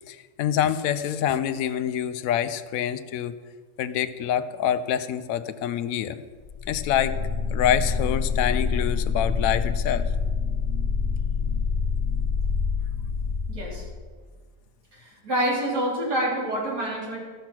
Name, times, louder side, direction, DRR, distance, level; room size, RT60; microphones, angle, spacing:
voice 1, 0.1-3.4 3.8-6.2 6.7-7.2 7.5-10.1, left 10 dB, 70° left, 11 dB, 0.9 m, -26 dB
sound 1, 6.4-14.1, left 5 dB, 50° left, 1.2 m, -26 dB
voice 2, 13.5-13.8 14.9-17.2, right 1 dB, 80° right, -5 dB, 3.8 m, -27 dB
14.5 x 5.8 x 6.0 m, 1.5 s
omnidirectional pair, 1.7 m